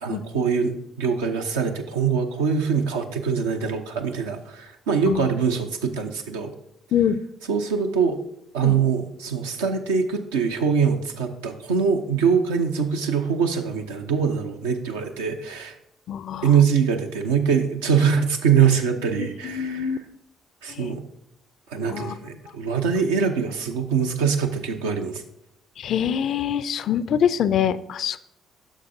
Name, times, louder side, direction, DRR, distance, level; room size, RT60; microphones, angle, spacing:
voice 1, 0.0-6.5 7.5-8.2 8.5-15.8 16.4-20.0 20.6-21.0 21.7-25.2, right 6 dB, 80° right, 4 dB, 0.6 m, -23 dB
voice 2, 16.1-16.4 19.2-20.0 20.8-20.9 21.9-22.1 25.8-28.2, left 9 dB, 60° left, 16 dB, 0.3 m, -24 dB
9.9 x 6.4 x 2.7 m, 0.79 s
hypercardioid pair, 45°, 0 cm